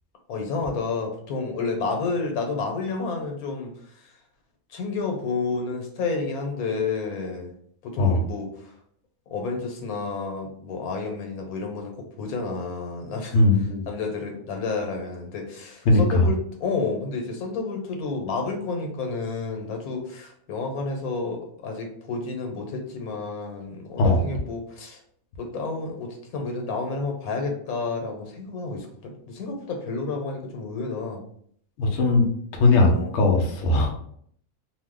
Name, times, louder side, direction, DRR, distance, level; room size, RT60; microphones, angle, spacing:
voice 1, 0.3-3.7 4.7-7.5 7.8-8.7 9.3-11.9 12.2-13.4 13.9-25.0 25.4-31.2 32.8-33.1, left 4 dB, 90° left, 3 dB, 1.2 m, -30 dB
voice 2, 13.3-13.9 15.9-16.3 24.0-24.2 31.8-32.2 32.5-33.9, left 2 dB, 65° left, 2 dB, 0.8 m, -19 dB
2.6 x 2.1 x 3.5 m, 0.64 s
omnidirectional pair, 1.5 m